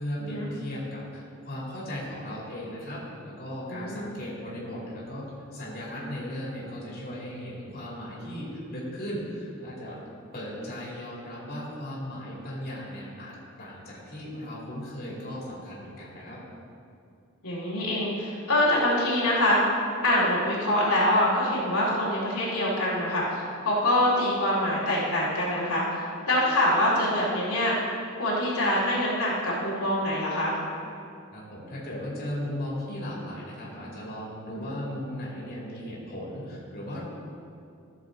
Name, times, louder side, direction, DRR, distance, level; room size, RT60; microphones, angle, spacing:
voice 1, 0.0-10.0 10.3-16.4 31.3-37.0, equal, 45° left, -6 dB, 2.6 m, -37 dB
voice 2, 3.7-4.1 17.4-19.6 20.0-27.8 28.2-30.6 34.5-34.7, left 1 dB, 80° left, -7 dB, 2.4 m, -25 dB
14.5 x 6.4 x 3.9 m, 2.5 s
head